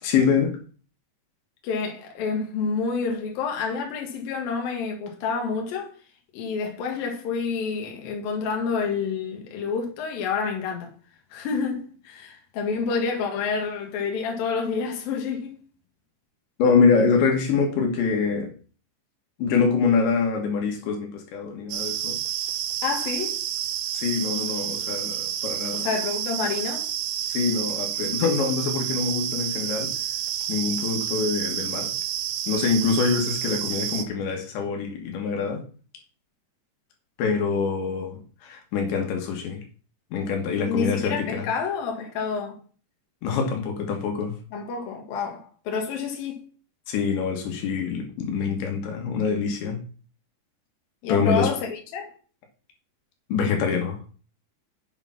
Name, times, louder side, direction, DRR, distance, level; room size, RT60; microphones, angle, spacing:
voice 1, 0.0-0.6 16.6-18.5 19.4-22.2 23.9-25.9 27.3-29.9 30.5-31.9 32.5-35.6 37.2-39.6 40.1-41.5 43.2-44.3 46.9-49.8 51.1-51.5 53.3-54.0, left 5 dB, 80° left, 4.1 m, -25 dB
voice 2, 1.6-5.9 6.3-10.9 11.3-15.6 22.8-23.4 25.7-26.9 40.6-42.6 44.5-46.5 51.0-52.1, left 5 dB, 60° left, 3.3 m, -28 dB
sound 1, 21.7-34.1, right 10 dB, 90° right, 3.4 m, -29 dB
8.0 x 7.1 x 5.9 m
omnidirectional pair, 5.1 m